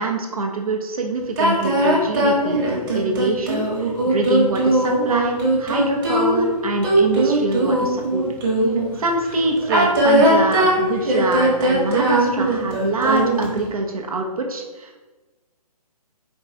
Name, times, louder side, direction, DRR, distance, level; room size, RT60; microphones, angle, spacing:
voice 1, 0.0-8.2 8.6-8.7 9.0-15.1, right 2 dB, 65° right, 2 dB, 0.8 m, -25 dB
sound 1, 1.4-8.9 9.6-13.6, right 1 dB, 35° right, 1.2 m, -19 dB
4.6 x 2.4 x 4.0 m, 1.2 s
figure-of-eight pair, 135°, 20 cm